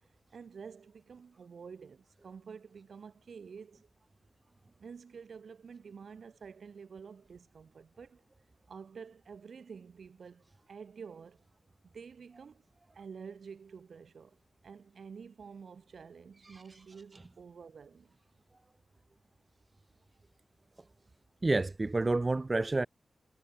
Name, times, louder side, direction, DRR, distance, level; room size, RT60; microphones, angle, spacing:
voice 1, 0.3-3.9 4.8-8.2 8.7-11.4 11.8-12.6 12.9-14.4 14.6-18.2, right 6 dB, 70° right, 3.4 m, -49 dB
voice 2, 21.4-22.9, right 2 dB, 35° right, 0.3 m, -29 dB
supercardioid pair, 40°, 0 cm